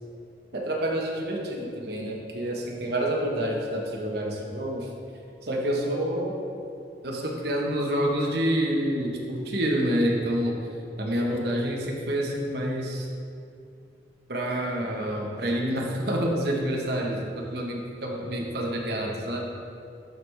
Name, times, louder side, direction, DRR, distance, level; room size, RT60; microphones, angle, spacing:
voice 1, 0.5-4.9 5.4-6.4 7.0-10.5 11.0-13.1 14.3-19.5, equal, 60° right, -1 dB, 1.1 m, -28 dB
12.0 x 4.7 x 3.4 m, 2.5 s
head